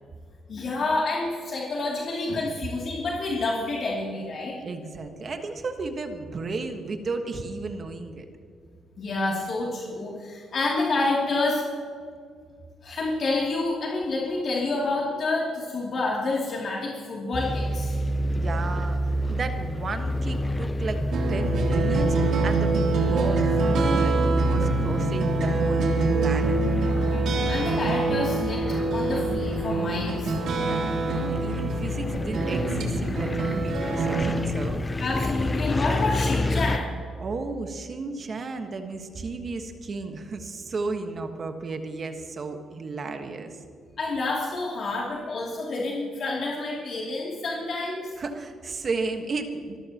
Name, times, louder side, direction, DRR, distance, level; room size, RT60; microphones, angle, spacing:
voice 1, 0.5-4.6 9.0-11.6 12.8-17.9 27.1-28.6 28.9-30.3 35.0-36.9 44.0-48.0, left 2 dB, 55° left, -3 dB, 2.8 m, -28 dB
voice 2, 4.6-8.3 18.3-26.6 30.5-34.8 37.2-43.6 48.2-49.8, right 3 dB, 45° right, 6 dB, 1.4 m, -33 dB
sound 1, 17.3-36.8, equal, 20° left, 0.6 m, -28 dB
sound 2, 21.1-34.4, right 3 dB, 70° right, 3.1 m, -26 dB
24.5 x 14.5 x 3.0 m, 2.3 s
cardioid pair, 90°, 0 cm